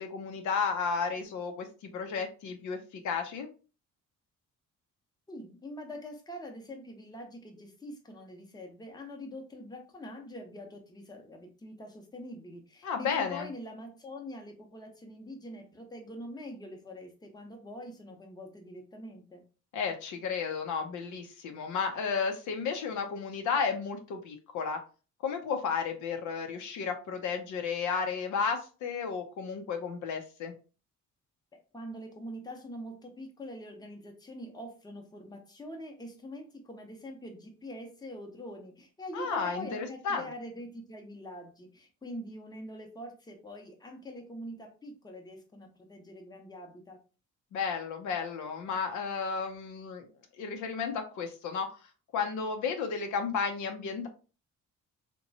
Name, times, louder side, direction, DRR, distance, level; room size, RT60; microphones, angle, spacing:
voice 1, 0.0-1.7 1.9-3.5 12.8-13.5 19.7-24.8 25.2-30.5 39.1-40.3 47.5-50.1 50.4-51.7 52.1-54.1, left 5 dB, 75° left, 5 dB, 0.6 m, -33 dB
voice 2, 5.3-19.4 31.7-47.0, equal, 15° left, 3 dB, 0.7 m, -44 dB
2.9 x 2.2 x 2.6 m, 0.35 s
cardioid pair, 90°, 30 cm